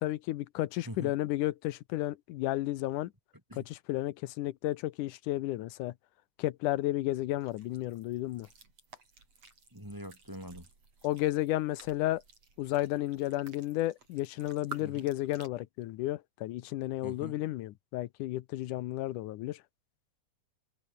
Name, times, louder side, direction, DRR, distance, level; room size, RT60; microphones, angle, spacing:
voice 1, 0.0-3.1 3.6-5.9 6.4-8.5 11.0-12.2 12.6-19.6, left 16 dB, 85° left, 2.4 m, -32 dB
sound 1, 7.4-15.5, right 4 dB, 55° right, 6.7 m, -53 dB
voice 2, 9.7-10.7 14.8-15.1 17.0-17.4, equal, 5° right, 5.9 m, -43 dB
omnidirectional pair, 3.5 m